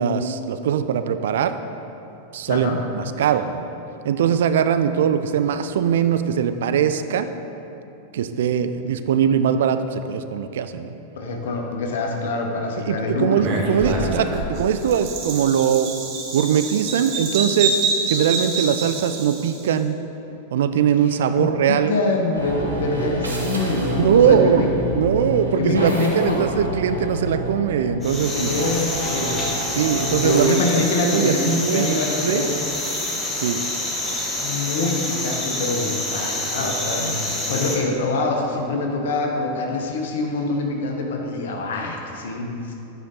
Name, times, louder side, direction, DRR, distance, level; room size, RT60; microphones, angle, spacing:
voice 1, 0.0-1.6 2.3-3.7 4.0-7.3 8.1-11.0 12.9-15.9 16.3-17.8 18.1-20.0 20.5-22.0 24.0-24.7 25.0-28.5 29.7-32.0 32.2-32.5 33.4-33.6, right 8 dB, 60° right, 10 dB, 0.3 m, -21 dB
voice 2, 2.5-2.8 11.1-14.1 21.3-24.8 25.5-26.4 28.3-29.5 30.0-32.6 34.4-42.7, left 3 dB, 60° left, 1 dB, 1.0 m, -25 dB
Bird vocalization bird call bird song, 13.4-19.7, right 4 dB, 40° right, 1.0 m, -26 dB
sound 1, 22.3-30.4, right 1 dB, 75° right, 1.0 m, -28 dB
sound 2, 28.0-37.8, left 1 dB, 15° left, 1.2 m, -27 dB
8.5 x 5.1 x 4.0 m, 2.9 s
figure-of-eight pair, 90°, 0 cm